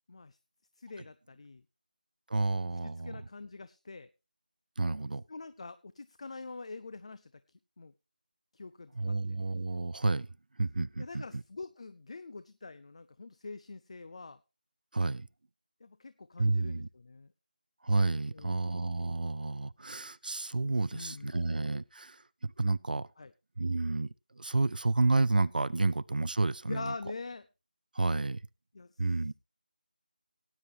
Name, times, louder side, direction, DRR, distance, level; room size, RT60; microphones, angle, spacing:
voice 1, 0.8-1.6 2.7-4.1 5.3-7.3 7.8-7.9 8.5-9.4 11.0-14.4 15.8-17.3 18.3-18.8 20.9-21.5 23.2-23.3 26.7-27.5 28.7-29.0, left 3 dB, 40° left, 0.5 m, -45 dB
voice 2, 2.3-3.2 4.8-5.2 9.0-10.3 10.6-11.4 14.9-15.3 16.4-16.9 17.8-23.1 23.6-26.9 27.9-28.4 29.0-29.3, right 3 dB, 70° right, 0.5 m, -30 dB
18.5 x 9.3 x 2.8 m
figure-of-eight pair, 170°, 5 cm